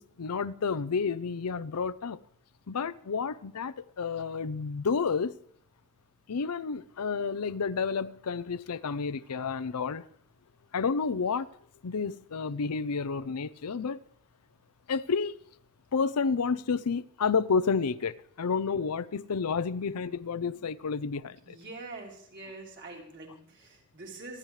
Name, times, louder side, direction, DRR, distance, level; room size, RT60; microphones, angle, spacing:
voice 1, 0.0-2.2 2.7-5.4 6.3-10.0 10.7-11.5 11.8-14.0 14.9-15.4 15.9-21.6, left 5 dB, 85° left, 0.6 m, -30 dB
voice 2, 21.4-24.4, right 3 dB, 50° right, 3.8 m, -45 dB
27.0 x 10.5 x 3.2 m
head